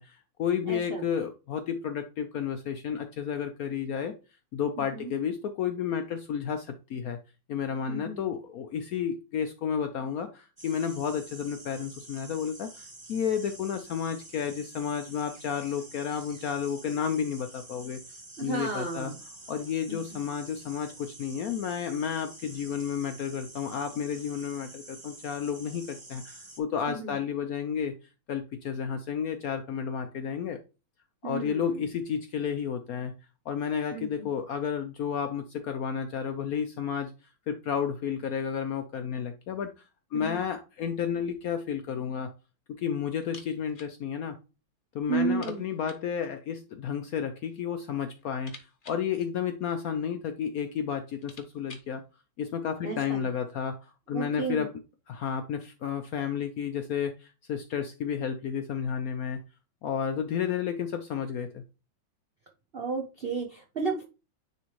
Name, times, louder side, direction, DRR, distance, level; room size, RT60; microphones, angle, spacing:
voice 1, 0.0-4.2 4.5-7.2 7.5-18.0 18.4-19.1 19.5-27.9 28.3-30.6 31.2-33.1 33.5-37.1 37.5-39.7 40.1-42.3 42.8-44.4 44.9-48.5 48.9-52.0 52.4-53.8 54.1-54.7 55.1-59.4 59.8-61.6, left 7 dB, 70° left, 7 dB, 0.8 m, -31 dB
voice 2, 0.6-1.1 4.9-5.1 7.9-8.3 18.4-19.1 19.9-20.2 26.9-27.2 31.2-31.9 33.9-34.1 40.1-40.4 45.1-45.7 52.8-53.3 54.1-54.6 62.7-64.0, right 4 dB, 60° right, 1 dB, 0.6 m, -33 dB
sound 1, 10.6-26.6, right 2 dB, 20° right, 0.7 m, -48 dB
sound 2, 43.2-44.0 44.2-44.3 44.7-44.8 45.3-46.1 47.1-47.7 48.0-50.0 50.7-50.8 51.0-52.0, left 4 dB, 40° left, 0.7 m, -52 dB
9.5 x 3.4 x 3.1 m, 0.31 s
omnidirectional pair, 2.1 m